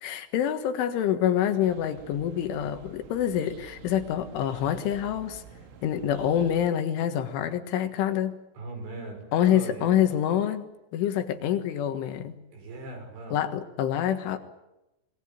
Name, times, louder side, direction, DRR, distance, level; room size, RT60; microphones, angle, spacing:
voice 1, 0.0-5.4 5.8-8.3 9.3-10.7 10.9-12.3 13.3-14.4, left 10 dB, 80° left, 8 dB, 4.0 m, -26 dB
sound 1, 1.6-6.7, right 5 dB, 80° right, 5.2 m, -48 dB
voice 2, 8.5-9.2 9.5-10.0 12.5-13.4, right 3 dB, 65° right, 4 dB, 8.4 m, -39 dB
27.5 x 21.0 x 8.7 m, 0.94 s
omnidirectional pair, 5.6 m